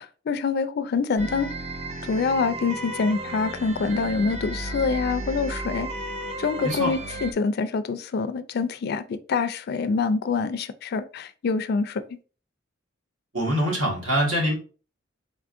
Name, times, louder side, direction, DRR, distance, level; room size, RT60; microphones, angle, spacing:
voice 1, 0.0-1.5 2.1-5.9 6.4-12.0, left 4 dB, 55° left, 0.3 m, -26 dB
sound 1, 1.2-7.3, right 1 dB, 35° right, 0.4 m, -34 dB
voice 2, 13.3-14.5, equal, 85° right, 1.7 m, -24 dB
4.0 x 3.5 x 2.5 m
head